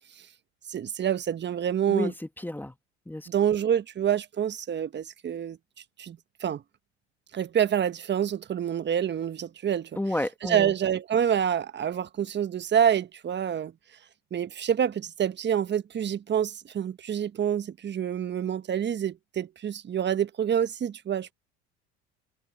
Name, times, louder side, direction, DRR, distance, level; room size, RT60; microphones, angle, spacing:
voice 1, 0.7-2.1 3.3-5.6 6.0-6.6 7.3-10.0 10.4-13.7 14.3-21.3, right 9 dB, 35° right, 1.2 m, -27 dB
voice 2, 2.4-2.7 3.1-3.3 10.0-10.7, left 1 dB, 5° left, 1.8 m, -30 dB
hypercardioid pair, 75°, 32 cm